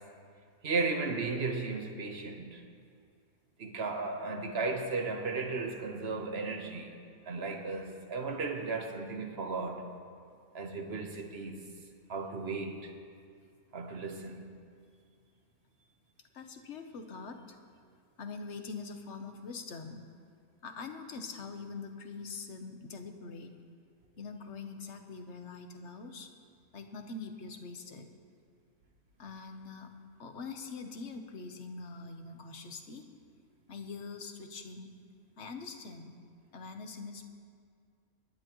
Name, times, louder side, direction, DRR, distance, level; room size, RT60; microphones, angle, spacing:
voice 1, 0.6-2.6 3.6-6.9 7.3-9.9 10.5-11.6 12.1-12.9 13.7-14.4, right 4 dB, 45° right, 1.3 m, -35 dB
voice 2, 16.3-17.6 18.2-20.0 20.6-23.5 24.2-26.3 26.7-28.1 29.2-29.9 30.2-33.1 33.7-35.0 35.4-36.2 36.5-37.3, left 4 dB, 55° left, 1.2 m, -43 dB
27.5 x 10.5 x 3.1 m
omnidirectional pair, 1.5 m